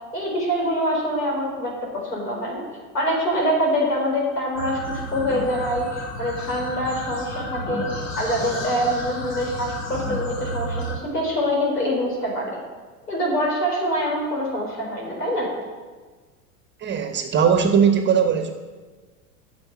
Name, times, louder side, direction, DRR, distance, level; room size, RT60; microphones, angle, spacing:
voice 1, 0.1-1.7 2.0-2.6 2.9-7.9 8.2-12.6 13.1-15.5, equal, 80° left, -2 dB, 4.4 m, -25 dB
sound 1, 4.6-10.9, left 1 dB, 35° left, 3.5 m, -32 dB
voice 2, 16.8-18.5, right 7 dB, 25° right, 6 dB, 1.2 m, -19 dB
9.5 x 7.1 x 8.5 m, 1.4 s
figure-of-eight pair, 90°, 46 cm